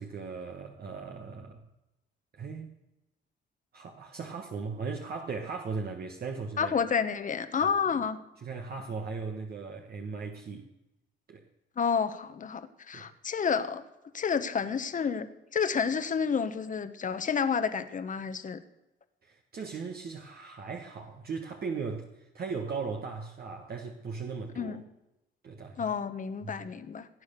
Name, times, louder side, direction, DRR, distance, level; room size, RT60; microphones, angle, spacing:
voice 1, 0.0-1.6 2.3-2.7 3.7-6.7 8.4-10.7 11.3-11.4 12.9-13.1 19.2-24.8 25.4-25.9 26.4-26.6, right 5 dB, 50° right, 3 dB, 1.4 m, -38 dB
voice 2, 6.6-8.2 11.8-13.8 14.1-15.3 15.5-18.6 24.6-24.8 25.8-27.1, left 6 dB, 40° left, 10 dB, 1.2 m, -30 dB
17.0 x 8.9 x 6.8 m, 0.96 s
cardioid pair, 90°, 20 cm